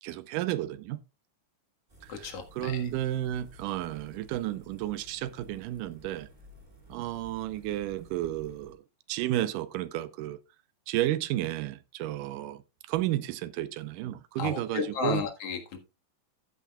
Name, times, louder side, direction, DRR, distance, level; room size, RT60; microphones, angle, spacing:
voice 1, 0.0-1.0 2.0-6.3 6.9-8.8 9.1-10.4 10.9-12.6 12.9-15.2, right 14 dB, 90° right, 2.3 m, -32 dB
sound 1, 1.9-8.7, equal, 15° right, 2.1 m, -54 dB
voice 2, 2.1-2.9 14.4-15.8, left 5 dB, 55° left, 2.3 m, -33 dB
14.0 x 8.6 x 2.3 m
omnidirectional pair, 3.7 m